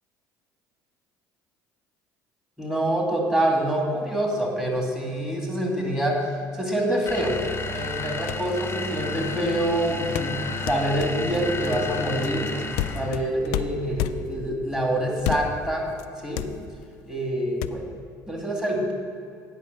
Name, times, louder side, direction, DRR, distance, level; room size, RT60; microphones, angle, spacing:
voice 1, 2.6-6.3 6.5-7.4 7.7-10.4 10.6-12.5 12.9-15.9 16.2-16.5 17.1-17.9 18.3-18.9, right 1 dB, 5° right, 0 dB, 2.2 m, -26 dB
sound 1, 7.1-13.2, left 2 dB, 25° left, 0.9 m, -32 dB
sound 2, 8.3-8.6 10.1-14.5 15.2-15.7 16.0-16.1 16.4-16.9 17.6-17.7, left 12 dB, 75° left, 0.4 m, -30 dB
9.2 x 5.6 x 6.6 m, 2.4 s
hypercardioid pair, 70°, 9 cm